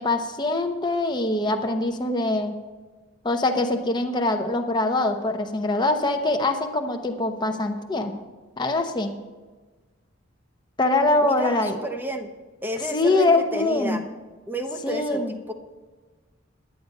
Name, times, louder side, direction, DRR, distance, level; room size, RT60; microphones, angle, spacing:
voice 1, 0.0-2.5 3.2-8.1 8.6-9.1 10.8-11.8 12.9-14.0 14.8-15.3, left 2 dB, 20° left, 4 dB, 0.9 m, -23 dB
voice 2, 11.2-12.3 12.6-14.0 14.5-15.5, right 1 dB, 10° right, 6 dB, 0.8 m, -31 dB
10.5 x 9.5 x 5.4 m, 1.3 s
head